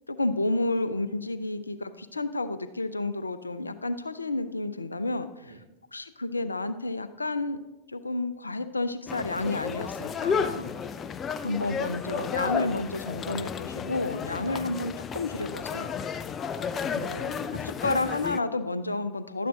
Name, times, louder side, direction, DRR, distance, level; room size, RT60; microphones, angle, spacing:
voice 1, 0.1-5.3 5.9-7.6 7.9-10.7 11.4-16.0 16.9-17.3 17.7-19.5, left 2 dB, 80° left, 13 dB, 0.6 m, -30 dB
sound 1, 9.1-18.4, left 6 dB, 25° left, 0.4 m, -32 dB
voice 2, 10.2-11.9 16.3-17.8, right 2 dB, 75° right, 5 dB, 1.1 m, -52 dB
12.0 x 9.3 x 3.8 m, 1.0 s
figure-of-eight pair, 90°, 0 cm